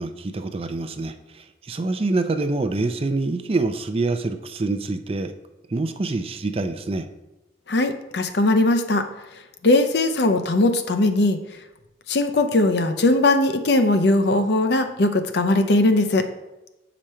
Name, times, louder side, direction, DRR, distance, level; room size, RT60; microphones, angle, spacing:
voice 1, 0.0-5.3 5.7-7.1, right 3 dB, 30° right, 8 dB, 0.4 m, -26 dB
voice 2, 7.7-9.1 9.6-11.4 12.1-16.3, left 2 dB, 65° left, 8 dB, 0.6 m, -19 dB
7.4 x 5.1 x 4.3 m, 1.0 s
head